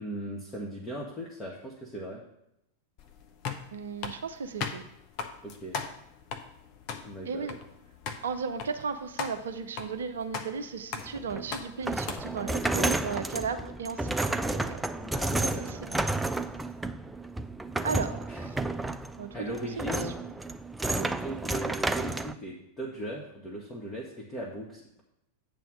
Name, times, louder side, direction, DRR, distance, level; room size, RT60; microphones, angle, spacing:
voice 1, 0.0-2.2 5.4-5.8 7.0-7.5 14.9-15.8 18.3-18.5 19.3-20.1 20.8-25.0, right 1 dB, 20° left, -3 dB, 1.3 m, -38 dB
sound 1, 3.0-12.7, left 6 dB, 40° left, 0.8 m, -40 dB
voice 2, 3.7-4.8 7.2-7.6 8.2-14.8 15.4-16.0 17.8-18.6 19.2-19.9 20.2-20.3, right 5 dB, 65° right, 9 dB, 0.5 m, -35 dB
sound 2, 11.0-22.3, right 2 dB, 5° right, 0.3 m, -31 dB
8.9 x 3.4 x 6.4 m, 0.82 s
figure-of-eight pair, 90°, 0 cm